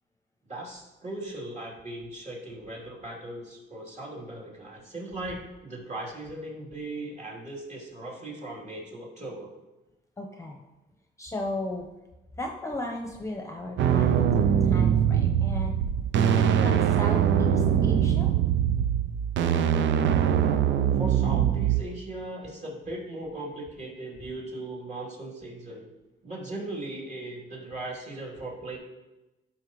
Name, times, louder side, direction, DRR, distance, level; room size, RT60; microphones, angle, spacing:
voice 1, 0.5-9.5 20.8-25.9 26.2-28.8, right 2 dB, 35° right, -4 dB, 3.1 m, -38 dB
voice 2, 10.2-10.6 11.2-11.9 12.4-14.4 14.6-15.8 16.6-18.3, left 1 dB, 15° left, 2 dB, 0.9 m, -35 dB
sound 1, 13.8-21.8, right 9 dB, 70° right, 0.5 m, -23 dB
12.0 x 5.7 x 3.1 m, 1.0 s
cardioid pair, 90°, 20 cm